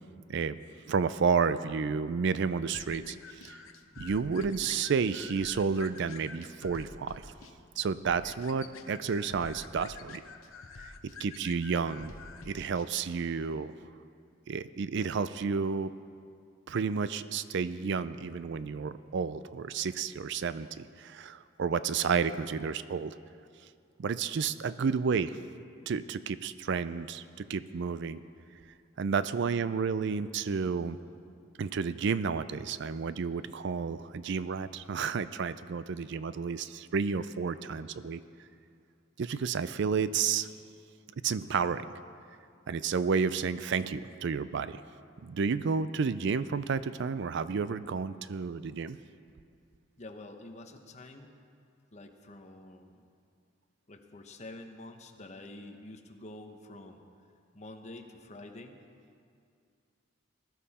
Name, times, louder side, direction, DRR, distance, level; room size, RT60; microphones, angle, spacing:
voice 1, 0.9-3.6 4.0-7.3 7.8-10.2 10.8-12.1 12.5-13.7 14.5-15.9 16.7-23.1 24.0-25.4 25.9-28.2 29.0-31.0 31.6-38.2 39.2-40.5 41.2-41.9 42.7-44.8 45.2-49.0, right 5 dB, 60° right, 14 dB, 0.4 m, -31 dB
sound 1, 2.7-12.9, left 4 dB, 85° left, 0.8 m, -48 dB
voice 2, 50.0-51.3 51.9-53.0 53.9-57.0 57.5-58.8, left 2 dB, 35° left, 5 dB, 1.0 m, -47 dB
19.5 x 12.5 x 4.2 m, 2.4 s
head